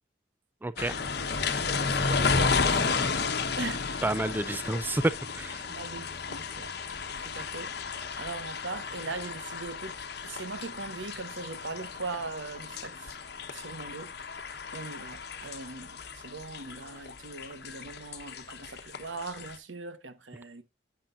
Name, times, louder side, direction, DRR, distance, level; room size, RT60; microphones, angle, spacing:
voice 1, 0.6-1.0 4.0-5.6, right 2 dB, 10° right, 0.4 m, -29 dB
sound 1, 0.8-19.6, left 4 dB, 60° left, 1.1 m, -33 dB
voice 2, 1.6-4.0 5.7-13.1 13.5-20.6, right 3 dB, 85° right, 1.1 m, -40 dB
10.0 x 7.6 x 2.5 m
head